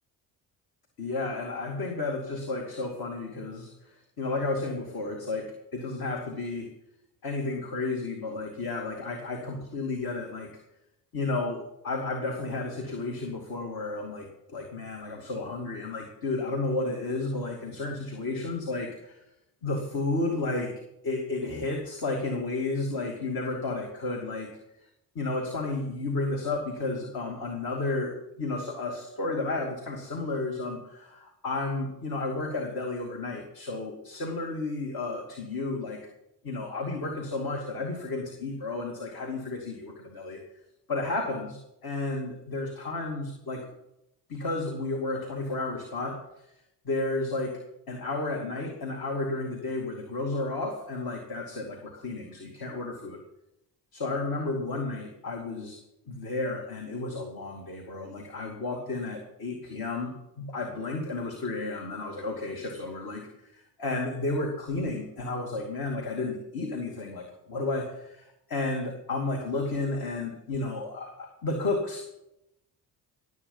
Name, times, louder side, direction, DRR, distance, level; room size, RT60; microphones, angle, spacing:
voice 1, 1.0-6.7 7.2-10.5 11.1-19.2 19.6-20.7 21.0-24.5 25.1-36.0 36.4-40.4 40.9-43.7 44.3-46.4 46.8-47.6 47.9-53.2 53.9-55.8 56.1-72.1, left 2 dB, 50° left, 2 dB, 2.5 m, -32 dB
18.5 x 8.5 x 5.6 m, 0.86 s
hypercardioid pair, 55°, 47 cm